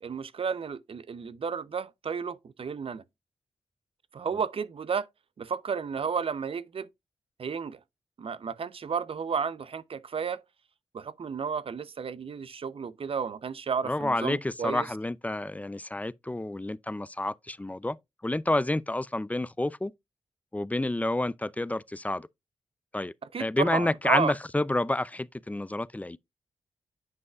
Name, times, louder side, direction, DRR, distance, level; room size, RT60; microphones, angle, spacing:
voice 1, 0.0-3.0 4.1-5.1 5.4-6.9 7.4-7.8 8.2-10.4 10.9-14.9 23.3-24.3, right 6 dB, 60° right, 0.6 m, -32 dB
voice 2, 13.8-18.0 18.2-19.9 20.5-22.3 22.9-26.2, left 1 dB, 15° left, 0.4 m, -29 dB
9.5 x 5.4 x 2.3 m
supercardioid pair, 40°, 11 cm